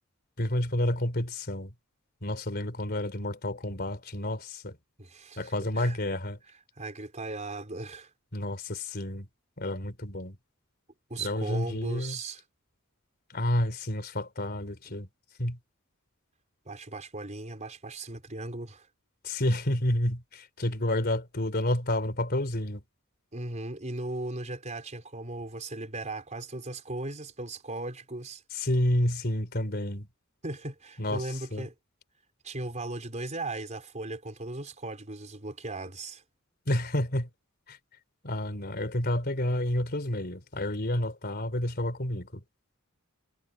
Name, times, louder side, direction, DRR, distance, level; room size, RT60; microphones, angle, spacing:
voice 1, 0.4-1.7 2.2-4.8 5.4-6.4 8.3-9.3 9.6-10.4 11.2-12.2 13.3-15.1 15.4-15.6 19.2-22.8 28.5-30.1 31.0-31.7 36.7-37.3 37.7-37.8 38.2-42.4, left 1 dB, 45° left, 3.7 m, -30 dB
voice 2, 5.0-6.0 6.8-8.1 11.1-12.4 16.6-18.9 23.3-28.4 30.4-31.7 32.4-36.2, right 2 dB, 35° right, 4.4 m, -37 dB
head